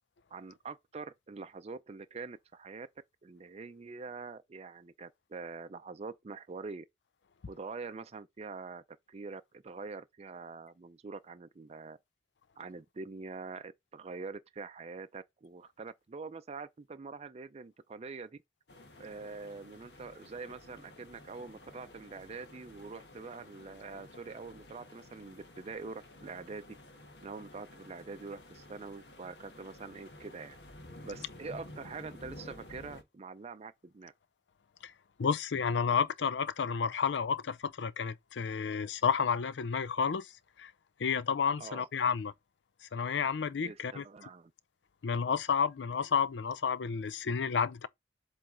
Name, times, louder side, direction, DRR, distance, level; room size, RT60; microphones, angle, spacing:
voice 1, 0.3-2.9 3.2-6.9 7.5-12.0 12.6-18.4 19.0-26.6 27.2-30.6 31.0-34.1 41.6-41.9 43.6-44.5, right 4 dB, 35° right, 0.4 m, -45 dB
sound 1, 18.7-33.0, left 1 dB, 70° left, 1.4 m, -52 dB
voice 2, 35.2-40.3 40.6-40.7 41.0-42.3 42.9-44.0 45.0-47.9, left 6 dB, 90° left, 0.5 m, -31 dB
7.7 x 3.3 x 3.8 m
head